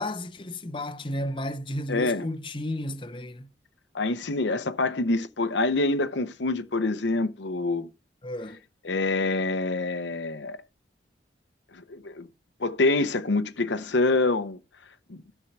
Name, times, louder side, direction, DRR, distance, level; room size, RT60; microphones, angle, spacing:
voice 1, 0.0-3.5 8.2-8.6, left 1 dB, 25° left, 0.8 m, -33 dB
voice 2, 1.9-2.3 3.9-7.9 8.8-10.6 11.7-12.3 12.6-14.6 15.1-15.2, left 2 dB, 75° left, 0.8 m, -26 dB
13.5 x 4.6 x 5.9 m
head